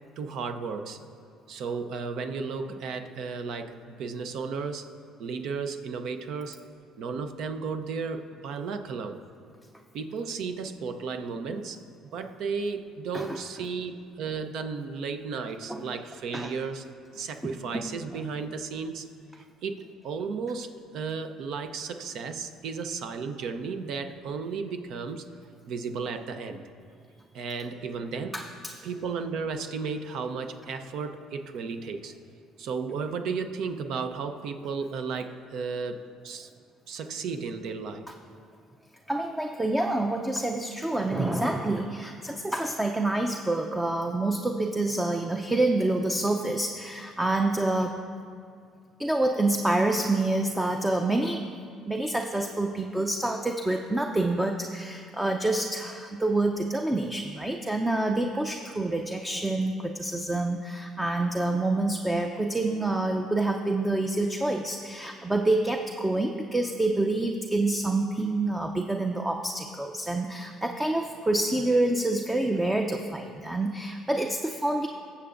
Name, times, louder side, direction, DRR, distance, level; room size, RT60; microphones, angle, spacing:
voice 1, 0.2-1.0 1.5-4.9 5.2-6.6 7.0-9.2 9.9-11.8 12.1-16.8 17.1-19.1 19.4-25.2 25.7-26.6 27.3-28.4 28.8-32.1 32.6-36.5 36.9-38.0, right 5 dB, 70° right, 8 dB, 0.7 m, -34 dB
voice 2, 17.4-17.9 18.1-18.2 28.3-28.7 39.1-48.0 49.0-51.4 51.9-74.9, right 2 dB, 10° right, 3 dB, 0.5 m, -27 dB
20.5 x 7.0 x 2.5 m, 2.2 s
supercardioid pair, 85°, 0 cm